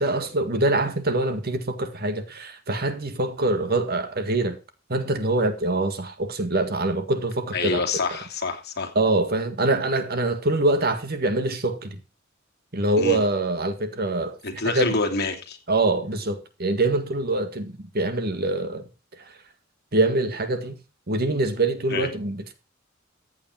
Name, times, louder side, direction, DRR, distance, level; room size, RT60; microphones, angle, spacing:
voice 1, 0.0-4.6 4.9-7.8 9.0-12.0 12.7-14.4 14.7-14.9 15.7-18.8 19.9-20.8 21.1-22.5, right 2 dB, 50° right, 1.8 m, -24 dB
voice 2, 7.5-8.9 13.0-13.2 14.4-15.6 21.9-22.1, left 3 dB, 55° left, 2.9 m, -27 dB
15.0 x 8.7 x 4.4 m
head